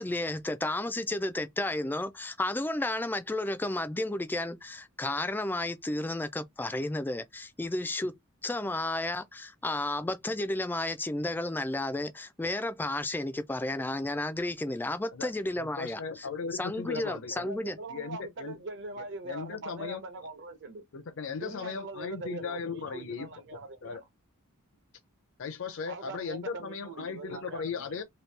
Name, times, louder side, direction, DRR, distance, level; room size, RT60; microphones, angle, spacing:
voice 1, 0.0-8.1 8.4-16.3 16.5-17.8, left 2 dB, 10° left, 0.3 m, -32 dB
voice 2, 15.6-17.5 17.9-18.6 19.0-20.0 20.9-24.0 25.4-28.0, left 5 dB, 60° left, 0.5 m, -37 dB
voice 3, 16.9-20.8 21.4-24.0 25.9-28.0, right 2 dB, 55° right, 0.7 m, -42 dB
2.9 x 2.6 x 3.2 m
head